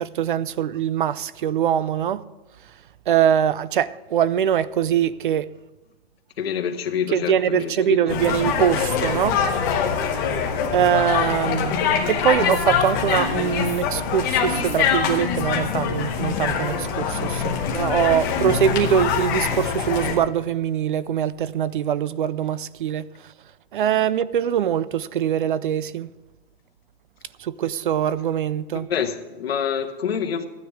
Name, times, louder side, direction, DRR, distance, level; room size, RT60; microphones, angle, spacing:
voice 1, 0.0-2.2 3.1-5.5 7.1-9.4 10.7-23.1 23.7-26.1 27.4-28.9, right 9 dB, 55° right, 0.5 m, -23 dB
voice 2, 6.4-8.2 28.7-30.5, left 7 dB, 75° left, 1.4 m, -27 dB
sound 1, 8.1-20.2, left 7 dB, 20° left, 1.0 m, -24 dB
13.5 x 9.6 x 4.8 m
hypercardioid pair, 180°, 31 cm